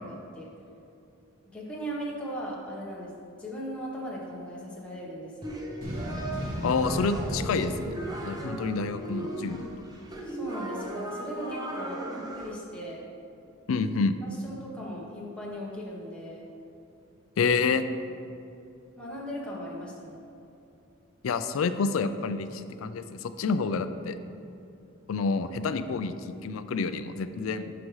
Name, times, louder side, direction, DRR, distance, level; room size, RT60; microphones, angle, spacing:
voice 1, 0.0-0.5 1.5-3.1 3.4-5.6 10.2-13.0 14.2-16.5 19.0-20.2, equal, 5° left, -6 dB, 1.1 m, -38 dB
sound 1, 5.4-12.5, right 1 dB, 20° right, 0.7 m, -37 dB
sound 2, 5.8-9.2, equal, 45° right, 1.5 m, -35 dB
voice 2, 6.6-8.0 8.2-9.7 13.7-14.2 17.4-17.9 21.2-24.2 25.1-27.7, left 4 dB, 75° left, 11 dB, 0.4 m, -28 dB
11.5 x 5.0 x 3.2 m, 2.7 s
head